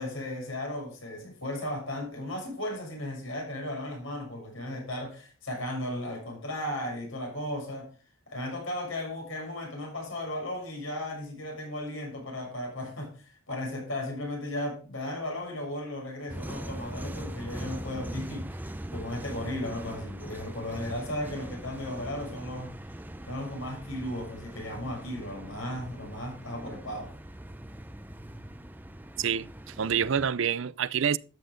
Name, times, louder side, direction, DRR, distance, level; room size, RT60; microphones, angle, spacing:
voice 1, 0.0-7.9 8.3-22.7 23.3-27.1, left 1 dB, 75° left, 6.6 m, -35 dB
sound 1, 16.3-30.3, right 1 dB, 10° right, 0.5 m, -41 dB
voice 2, 29.2-31.2, right 7 dB, 70° right, 0.5 m, -27 dB
13.0 x 9.2 x 3.8 m
head